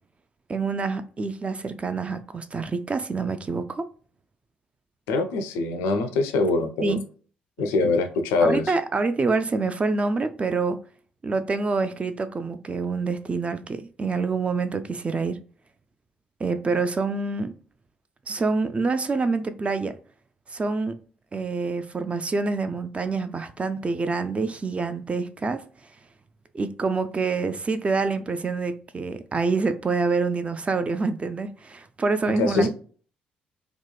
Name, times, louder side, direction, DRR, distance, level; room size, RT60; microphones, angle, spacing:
voice 1, 0.5-3.9 6.8-7.0 7.8-7.9 8.4-10.8 11.2-15.4 16.4-17.5 18.3-19.9 20.5-21.0 21.3-25.6 26.5-32.7, right 4 dB, 25° right, 0.3 m, -26 dB
voice 2, 5.1-7.0 7.6-8.7 32.4-32.7, left 3 dB, 70° left, 0.4 m, -23 dB
2.8 x 2.1 x 2.2 m
figure-of-eight pair, 45°, 4 cm